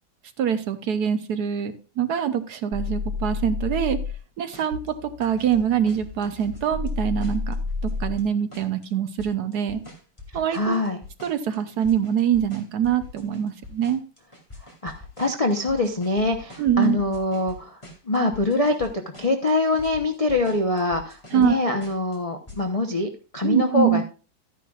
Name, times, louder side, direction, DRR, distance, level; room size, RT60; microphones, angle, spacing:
voice 1, 0.4-4.0 4.4-7.6 8.0-9.8 10.3-10.8 11.2-14.0 16.6-17.0 21.3-21.6 23.4-24.0, right 9 dB, 65° right, 10 dB, 1.1 m, -24 dB
sound 1, 2.7-4.2 4.7-8.2, left 4 dB, 85° right, 2.1 m, -30 dB
sound 2, 4.5-4.9 5.2-6.9 7.2-8.9 9.2-17.6 17.8-18.9 19.1-21.5 21.8-22.2 22.5-22.6, left 3 dB, 15° left, 2.2 m, -44 dB
voice 2, 10.5-11.0 14.8-18.9 19.2-24.0, left 2 dB, 65° left, 2 dB, 0.3 m, -24 dB
12.5 x 9.9 x 2.4 m, 0.36 s
omnidirectional pair, 2.1 m